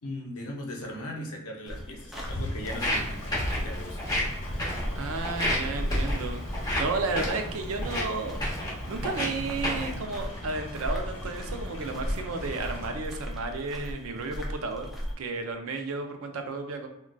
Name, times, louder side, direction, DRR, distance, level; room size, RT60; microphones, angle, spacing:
voice 1, 0.0-3.2 3.5-4.0, left 1 dB, 85° left, 1 dB, 0.7 m, -38 dB
sound 1, 1.7-15.2, equal, ahead, 0.4 m, -36 dB
sound 2, 2.1-13.0, left 1 dB, 60° left, 0.9 m, -40 dB
Walk footsteps, 2.6-10.0, left 1 dB, 15° left, 0.8 m, -32 dB
voice 2, 5.0-6.4 6.8-8.4 8.9-16.9, right 3 dB, 70° right, 5 dB, 0.5 m, -33 dB
3.7 x 2.2 x 2.3 m, 0.86 s
head